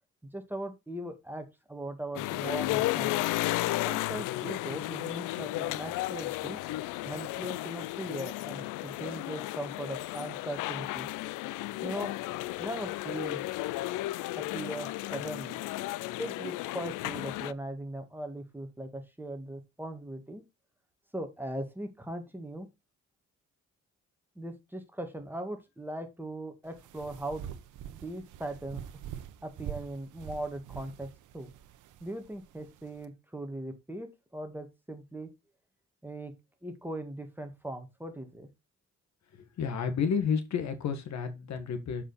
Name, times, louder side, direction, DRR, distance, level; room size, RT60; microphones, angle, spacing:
voice 1, 0.2-3.2 3.8-6.6 7.0-11.1 11.8-12.1 12.6-13.4 14.4-15.6 16.2-20.4 21.1-22.7 24.4-27.5 27.8-28.8 29.4-31.5 32.0-35.3 36.0-36.3 36.6-38.5, right 1 dB, 5° right, 1.9 m, -39 dB
sound 1, 2.2-17.5, left 18 dB, 90° left, 0.5 m, -34 dB
sound 2, 26.6-33.1, right 10 dB, 80° right, 1.0 m, -45 dB
voice 2, 39.3-42.0, left 6 dB, 65° left, 1.8 m, -31 dB
7.1 x 5.5 x 4.1 m
cardioid pair, 90°, 30 cm